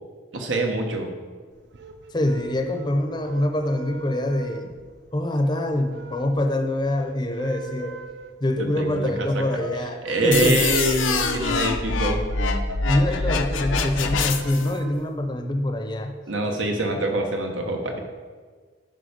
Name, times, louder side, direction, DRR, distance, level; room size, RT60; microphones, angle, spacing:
voice 1, 0.3-1.1 8.6-9.6 10.0-12.2 16.3-18.0, right 2 dB, 90° right, 2 dB, 1.3 m, -25 dB
sound 1, 1.5-15.5, right 3 dB, 65° right, 0.6 m, -42 dB
voice 2, 2.1-4.7 5.1-8.0 8.4-10.6 12.9-16.2, left 1 dB, 20° left, 6 dB, 0.6 m, -25 dB
sound 2, 10.3-14.7, left 4 dB, 85° left, 0.7 m, -25 dB
9.1 x 5.5 x 5.2 m, 1.5 s
head